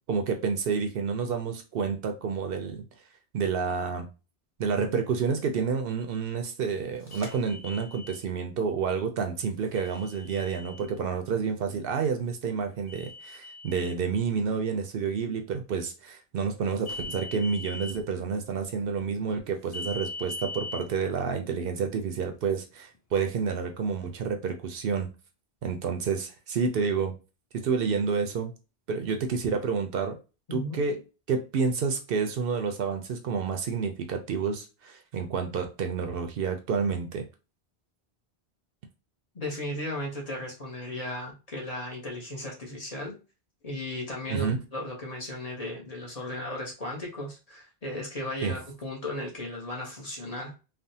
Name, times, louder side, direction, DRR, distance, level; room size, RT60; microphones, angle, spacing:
voice 1, 0.1-2.8 3.3-4.1 4.6-25.1 25.6-27.1 27.5-28.5 28.9-30.2 30.5-31.0 31.3-37.2 44.3-44.6 48.4-48.6, right 5 dB, 70° right, 0.7 m, -29 dB
sound 1, 7.1-8.2 9.8-10.9 12.9-13.9 16.8-17.9 19.7-20.8, left 2 dB, 20° left, 0.6 m, -40 dB
voice 2, 30.5-30.8 39.3-43.1 43.6-50.5, left 1 dB, 40° left, 0.9 m, -36 dB
3.3 x 2.1 x 2.7 m
omnidirectional pair, 1.1 m